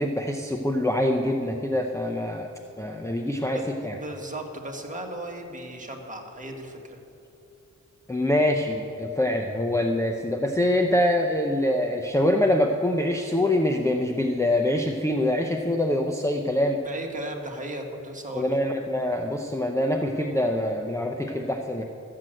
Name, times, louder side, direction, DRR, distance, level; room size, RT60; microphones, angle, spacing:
voice 1, 0.0-2.5 2.8-4.0 8.1-16.8 18.3-21.8, left 1 dB, 10° left, 3 dB, 0.7 m, -24 dB
voice 2, 3.4-7.0 16.8-18.6, right 1 dB, 25° right, 1 dB, 1.7 m, -36 dB
13.5 x 7.8 x 7.7 m, 2.8 s
wide cardioid pair, 95°, 30 cm